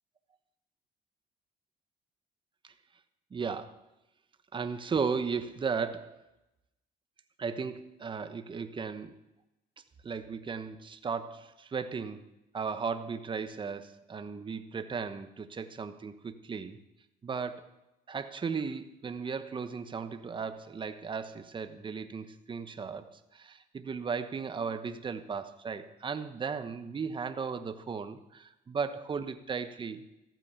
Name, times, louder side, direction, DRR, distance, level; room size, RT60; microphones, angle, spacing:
voice 1, 3.3-3.8 4.5-6.2 7.4-9.2 10.0-12.2 12.5-16.8 17.2-17.7 18.1-30.0, right 5 dB, 30° right, 10 dB, 1.1 m, -36 dB
14.5 x 9.2 x 6.8 m, 0.93 s
cardioid pair, 110°, 17 cm